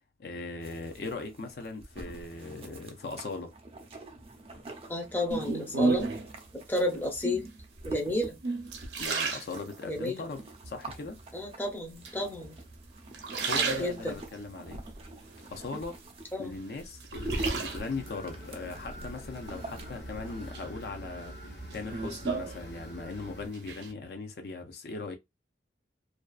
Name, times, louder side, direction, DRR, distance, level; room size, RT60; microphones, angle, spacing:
voice 1, 0.2-3.5 9.0-11.2 13.4-14.8 15.5-16.0 16.4-25.2, left 3 dB, 60° left, 0.5 m, -39 dB
sound 1, 0.6-20.5, right 2 dB, 35° right, 0.5 m, -44 dB
voice 2, 4.9-6.1 6.5-7.5 7.8-8.4 9.8-10.2 11.3-12.6 13.3-13.5 13.8-14.2 16.3-16.5, left 1 dB, 10° left, 0.6 m, -32 dB
sound 2, 5.3-6.4 7.1-7.6 8.2-10.1 10.6-11.2 12.1-12.7 13.1-14.4 14.9-16.1 16.5-18.1 19.5-20.1 20.5-23.2 23.4-23.9, right 4 dB, 80° right, 0.6 m, -33 dB
sound 3, 17.1-23.5, equal, 85° left, 0.8 m, -45 dB
2.5 x 2.3 x 2.3 m
head